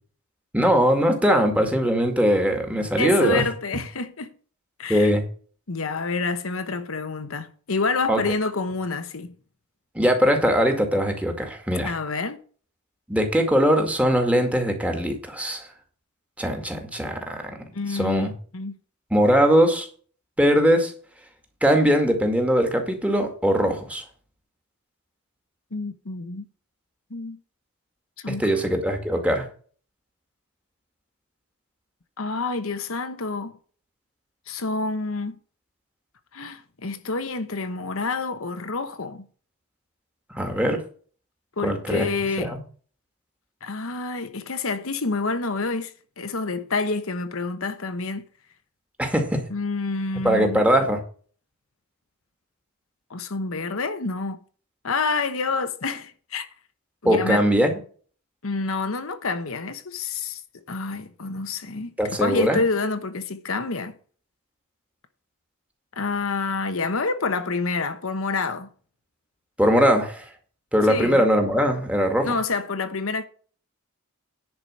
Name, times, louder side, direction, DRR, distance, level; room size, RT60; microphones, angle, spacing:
voice 1, 0.5-3.4 4.9-5.2 8.1-8.2 10.0-11.9 13.1-15.7 16.4-17.6 17.9-18.3 19.1-19.9 20.4-20.9 21.6-24.0 28.3-29.5 40.3-40.8 41.6-42.1 42.4-42.6 49.0-49.4 50.2-51.0 57.1-57.7 62.0-62.6 69.6-70.3 70.7-72.4, equal, 5° right, 2.0 m, -21 dB
voice 2, 3.0-4.3 4.8-5.1 5.7-9.3 11.8-12.4 17.7-18.3 18.5-18.8 25.7-26.5 27.1-27.4 28.2-28.4 32.2-33.6 34.5-35.4 36.3-39.2 41.6-42.5 43.6-48.2 49.5-50.6 53.1-54.4 54.8-56.5 57.0-57.5 58.4-60.4 60.7-63.9 65.9-68.7 70.9-71.3 72.2-73.3, left 3 dB, 70° left, 1.1 m, -28 dB
10.5 x 5.0 x 7.5 m
head